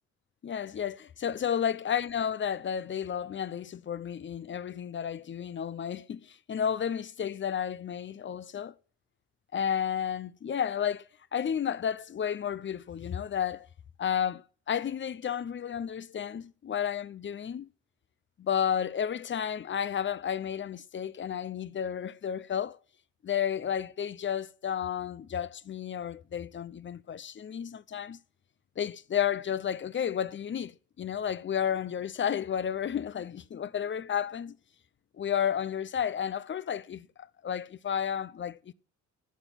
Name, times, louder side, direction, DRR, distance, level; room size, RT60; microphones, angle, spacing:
voice 1, 0.4-8.7 9.5-13.7 14.0-17.7 18.4-22.8 23.2-28.2 28.8-34.6 35.2-38.7, left 8 dB, 40° left, 0.7 m, -32 dB
14.0 x 7.0 x 6.0 m
cardioid pair, 90°, 30 cm